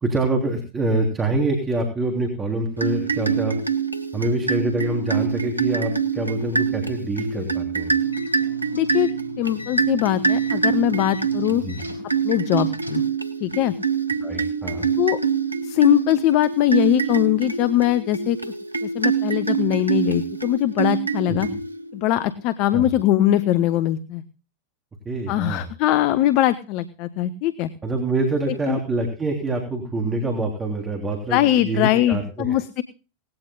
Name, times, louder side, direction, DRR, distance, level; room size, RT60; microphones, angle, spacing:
voice 1, 0.0-3.6 4.1-7.9 11.6-11.8 14.2-14.9 22.7-22.9 25.0-25.7 27.8-32.6, right 2 dB, 15° right, 2 dB, 3.3 m, -25 dB
sound 1, 2.8-22.0, right 6 dB, 85° right, 1.2 m, -25 dB
sound 2, 8.0-13.1, left 1 dB, 85° left, 4.1 m, -40 dB
voice 2, 8.7-9.1 9.4-11.6 12.2-13.0 13.4-13.7 15.0-15.2 15.6-18.4 18.8-21.5 21.9-24.2 25.3-27.7 28.7-28.8 31.3-32.8, left 13 dB, 45° left, 14 dB, 0.9 m, -21 dB
19.0 x 16.5 x 2.3 m, 0.36 s
figure-of-eight pair, 90°, 0 cm